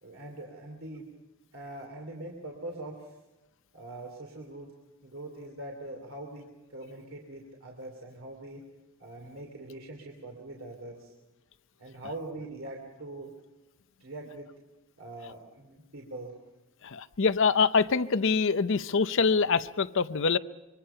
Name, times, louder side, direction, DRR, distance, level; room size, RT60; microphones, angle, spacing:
voice 1, 0.0-1.1 1.5-3.1 3.7-4.7 5.0-8.6 9.0-11.1 11.8-13.3 14.0-14.5 15.0-16.3, right 2 dB, 65° right, 1 dB, 3.0 m, -42 dB
voice 2, 16.8-20.4, left 5 dB, 60° left, 13 dB, 0.7 m, -25 dB
25.5 x 23.5 x 5.7 m, 1.1 s
head